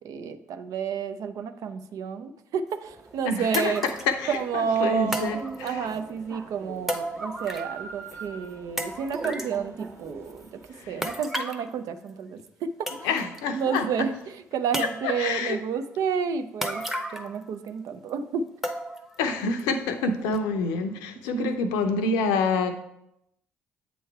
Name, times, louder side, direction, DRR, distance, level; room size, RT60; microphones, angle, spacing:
voice 1, 0.0-3.8 4.3-5.3 5.6-10.6 10.9-12.4 13.0-13.1 13.5-16.8 17.1-18.4 21.4-21.6, right 6 dB, 60° right, 9 dB, 0.5 m, -30 dB
sound 1, 2.7-2.8 3.5-4.1 5.1-6.0 6.9-7.8 8.1-8.2 8.8-9.6 11.0-11.7 12.5-12.6 12.9-13.4 13.8-13.9 14.7-15.3 16.6-17.4 17.7-17.8 18.6-19.2 19.6-19.7 20.3-20.4, equal, ahead, 0.8 m, -33 dB
sound 2, 2.9-11.2, right 4 dB, 45° right, 1.3 m, -43 dB
voice 2, 3.2-3.7 4.2-5.8 10.8-11.0 13.0-13.9 15.0-15.6 19.2-22.7, left 3 dB, 75° left, 8 dB, 0.6 m, -27 dB
7.9 x 3.1 x 4.5 m, 0.81 s
hypercardioid pair, 45°, 7 cm